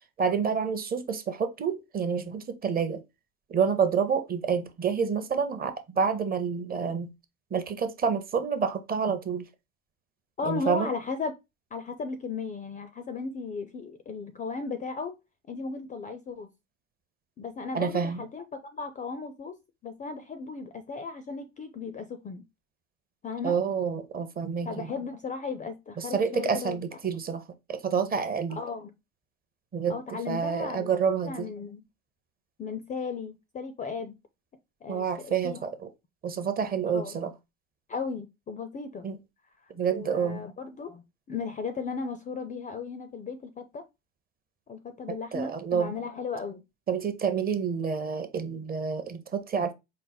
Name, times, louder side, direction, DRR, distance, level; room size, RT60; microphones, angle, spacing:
voice 1, 0.2-3.0 3.5-7.1 7.5-9.5 10.4-10.9 17.7-18.2 23.4-24.9 26.0-27.4 27.7-28.6 29.7-31.5 34.9-35.9 36.2-37.3 39.0-39.2 39.8-40.4 45.3-45.9 46.9-49.7, right 6 dB, 25° right, 0.6 m, -28 dB
voice 2, 10.4-11.3 11.7-15.1 15.5-16.5 17.4-18.4 18.7-19.5 19.8-22.4 23.2-23.6 24.6-26.8 28.5-28.9 29.9-30.9 31.2-31.8 32.6-34.1 34.8-35.6 36.9-37.2 37.9-39.1 39.9-43.8 44.7-46.6, left 4 dB, 20° left, 0.4 m, -36 dB
4.1 x 2.0 x 3.9 m
hypercardioid pair, 95°, 39 cm